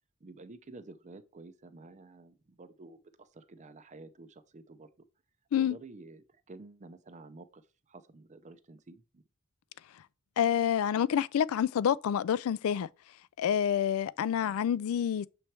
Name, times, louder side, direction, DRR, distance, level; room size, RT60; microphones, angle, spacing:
voice 1, 0.2-4.9 5.6-9.2 14.3-14.7, right 3 dB, 35° right, 0.5 m, -51 dB
voice 2, 10.4-12.9 13.4-15.3, left 9 dB, 70° left, 0.3 m, -28 dB
6.8 x 3.2 x 4.4 m
head